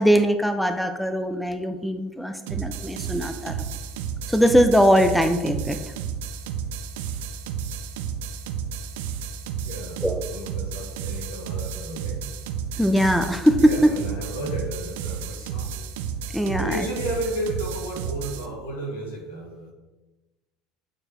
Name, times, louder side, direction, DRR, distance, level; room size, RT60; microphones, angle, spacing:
voice 1, 0.0-3.5 4.3-5.8 10.0-10.2 12.8-13.7 16.3-16.8, equal, ahead, 7 dB, 0.6 m, -21 dB
sound 1, 2.5-18.5, right 7 dB, 70° right, 0.5 m, -32 dB
voice 2, 9.6-12.2 13.6-15.8 16.5-19.7, right 1 dB, 80° left, -2 dB, 2.0 m, -33 dB
8.5 x 4.6 x 3.0 m, 1.1 s
hypercardioid pair, 75°, 0 cm